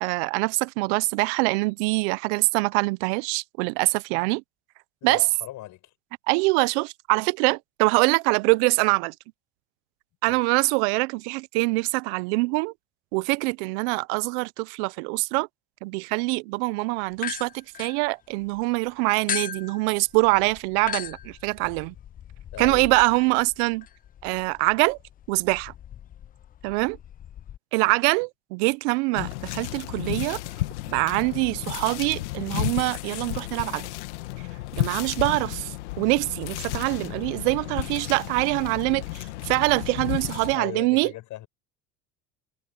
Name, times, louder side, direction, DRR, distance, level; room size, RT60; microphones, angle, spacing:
voice 1, 0.0-4.4 5.0-5.2 6.3-9.1 10.2-12.7 13.1-15.5 15.8-21.9 22.6-23.8 24.2-25.0 25.3-25.7 26.6-27.0 27.7-30.4 30.9-33.9 34.8-41.1, right 27 dB, 75° right, 0.7 m, -24 dB
voice 2, 5.0-5.9 10.2-10.6 22.5-22.9 27.8-28.1 40.5-41.5, left 15 dB, 60° left, 6.2 m, -39 dB
sound 1, 17.1-18.6 19.3-27.6, left 10 dB, 25° left, 0.4 m, -38 dB
sound 2, 29.2-40.6, left 17 dB, 90° left, 1.8 m, -33 dB
supercardioid pair, 90°, 34 cm